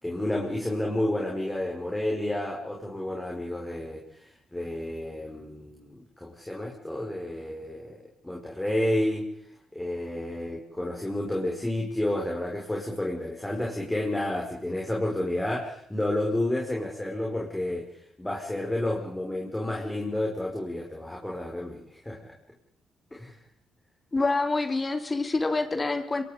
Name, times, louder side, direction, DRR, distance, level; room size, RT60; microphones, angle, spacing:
voice 1, 0.0-4.0 4.5-8.0 8.2-9.3 9.7-17.9 18.2-22.2 23.1-23.4, left 1 dB, 10° left, -2 dB, 5.4 m, -30 dB
voice 2, 24.1-26.2, left 3 dB, 25° left, 6 dB, 3.2 m, -26 dB
26.5 x 22.5 x 5.3 m, 0.67 s
cardioid pair, 90°, 0 cm